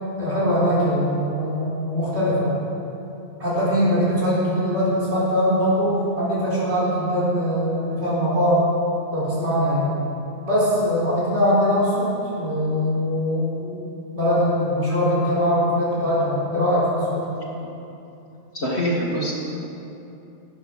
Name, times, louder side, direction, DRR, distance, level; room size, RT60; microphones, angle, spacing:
voice 1, 0.2-2.5 3.4-8.6 9.1-9.9 10.5-17.3, equal, 65° right, -9 dB, 4.3 m, -22 dB
voice 2, 18.5-19.3, equal, 65° left, -4 dB, 2.0 m, -24 dB
14.5 x 9.8 x 6.2 m, 2.8 s
omnidirectional pair, 1.2 m